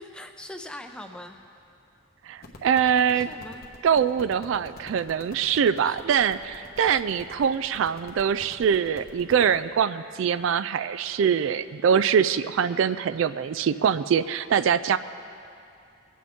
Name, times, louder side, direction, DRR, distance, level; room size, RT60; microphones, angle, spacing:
voice 1, 0.0-1.4 3.1-3.7 5.8-6.0 6.8-7.0, left 1 dB, 5° left, 5 dB, 0.6 m, -41 dB
voice 2, 2.2-3.3 3.8-15.0, right 7 dB, 70° right, 13 dB, 0.3 m, -23 dB
sound 1, 2.4-9.6, left 1 dB, 50° left, 1.1 m, -47 dB
22.5 x 8.4 x 3.6 m, 2.7 s
head